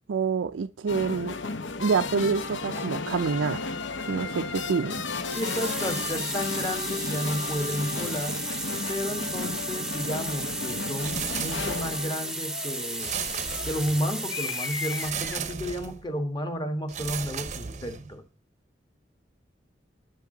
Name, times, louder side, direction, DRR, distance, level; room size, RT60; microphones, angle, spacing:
voice 1, 0.1-1.4 1.8-3.6 4.1-5.0, right 5 dB, 80° right, 0.4 m, -27 dB
sound 1, 0.9-15.5, left 4 dB, 70° left, 0.8 m, -34 dB
voice 2, 5.3-8.4 8.9-13.2 13.7-18.2, equal, 25° left, 1.4 m, -32 dB
sound 2, 5.3-15.1, right 2 dB, 5° right, 0.8 m, -34 dB
sound 3, 11.0-12.1 13.0-14.2 15.0-16.0 16.9-18.2, right 7 dB, 40° right, 0.7 m, -35 dB
11.0 x 8.3 x 3.9 m
head